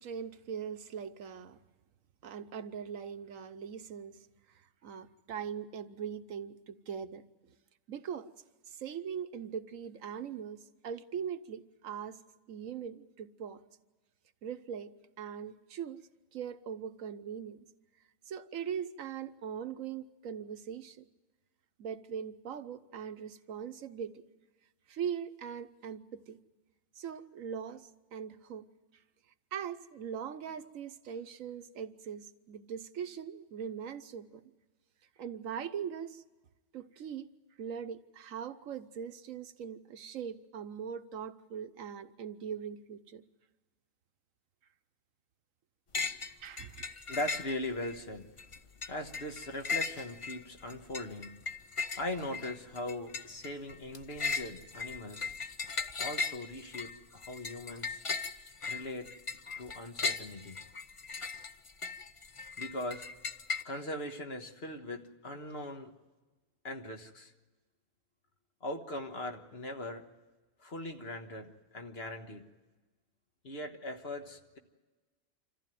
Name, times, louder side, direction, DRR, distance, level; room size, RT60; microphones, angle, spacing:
voice 1, 0.0-1.6 2.2-4.2 4.8-7.2 7.9-8.3 8.7-12.2 12.5-13.6 14.4-14.9 15.2-16.0 16.3-17.6 18.3-21.0 21.8-24.2 24.9-26.4 26.9-28.6 29.5-34.4 35.2-36.2 36.7-37.3 37.6-43.2 46.4-46.8, right 7 dB, 80° right, 10 dB, 1.3 m, -41 dB
sound 1, 45.9-46.3 46.6-48.0 48.4-63.6, left 4 dB, 30° left, 0.6 m, -38 dB
voice 2, 47.1-48.3 48.9-51.4 52.0-55.4 56.0-58.0 58.7-59.1 59.6-60.6 62.6-63.1 63.6-65.9 66.6-67.3 68.6-70.1 70.6-72.5 73.4-74.6, left 1 dB, 50° left, 5 dB, 1.7 m, -40 dB
26.0 x 14.5 x 9.2 m, 1.2 s
omnidirectional pair, 1.4 m